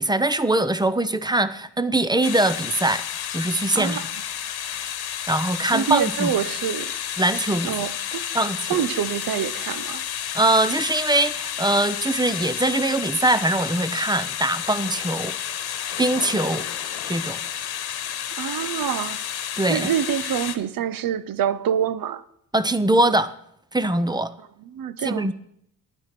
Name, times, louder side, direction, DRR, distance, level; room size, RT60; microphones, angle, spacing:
voice 1, 0.0-3.0 3.3-4.0 4.7-4.8 5.3-6.3 7.2-7.7 8.3-8.8 10.3-15.3 16.0-16.6 17.1-17.4 19.6-19.9 22.5-23.3 23.7-24.3 25.0-25.3, right 1 dB, 10° right, 0.7 m, -22 dB
sound 1, 2.2-20.6, left 10 dB, 75° left, 1.2 m, -31 dB
voice 2, 3.7-4.2 5.7-6.9 7.6-8.2 8.7-10.0 18.4-19.2 19.7-22.2 24.7-25.3, right 9 dB, 60° right, 0.8 m, -26 dB
10.5 x 9.5 x 5.9 m
supercardioid pair, 65°, 38 cm